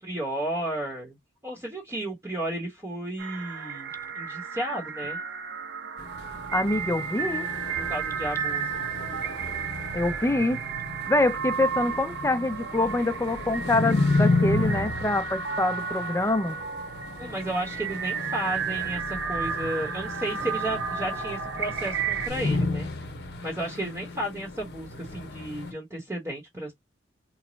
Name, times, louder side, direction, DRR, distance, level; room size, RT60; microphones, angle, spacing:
voice 1, 0.0-1.2 1.4-5.2 7.8-8.7 17.2-22.9 23.4-26.7, right 1 dB, 15° right, 0.9 m, -33 dB
sound 1, 3.2-22.3, right 6 dB, 85° right, 0.5 m, -33 dB
sound 2, 6.0-25.7, left 2 dB, 60° left, 0.7 m, -32 dB
voice 2, 6.5-7.5 9.9-10.6 11.1-16.6, left 2 dB, 15° left, 0.4 m, -25 dB
3.1 x 2.1 x 3.9 m
head